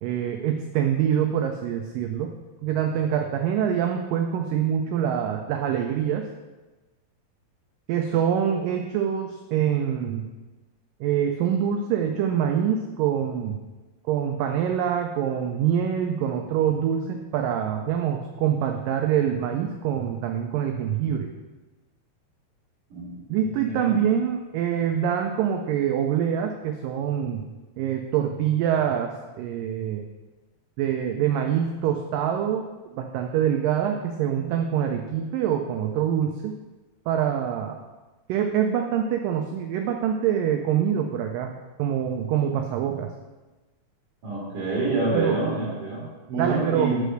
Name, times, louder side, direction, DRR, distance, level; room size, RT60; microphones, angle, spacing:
voice 1, 0.0-2.4 2.6-6.2 7.9-10.3 11.0-13.6 14.1-21.3 23.3-27.5 27.8-30.0 30.8-36.5 37.1-37.8 38.3-41.5 41.8-43.1 45.1-45.4 46.4-46.9, right 9 dB, 85° right, 4 dB, 1.9 m, -25 dB
voice 2, 44.2-47.0, right 3 dB, 55° right, -8 dB, 3.5 m, -27 dB
6.6 x 5.5 x 6.3 m, 1.2 s
omnidirectional pair, 4.5 m